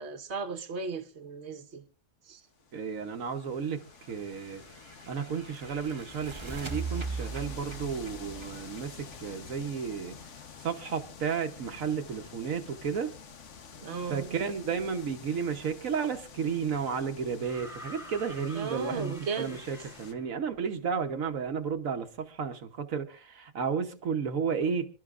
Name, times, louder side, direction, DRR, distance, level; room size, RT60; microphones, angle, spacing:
voice 1, 0.0-1.8 2.3-2.4 13.8-14.4 18.5-19.6, right 5 dB, 55° right, 1.5 m, -35 dB
sound 1, 2.6-20.1, left 6 dB, 65° left, 1.4 m, -49 dB
voice 2, 2.7-3.8 4.1-4.6 5.1-10.3 10.6-13.1 14.1-24.9, right 6 dB, 80° right, 1.4 m, -33 dB
sound 2, 4.1-9.8, right 4 dB, 25° right, 1.0 m, -40 dB
sound 3, 17.4-20.5 21.7-21.8, left 1 dB, ahead, 2.4 m, -48 dB
26.5 x 12.0 x 2.5 m
omnidirectional pair, 1.4 m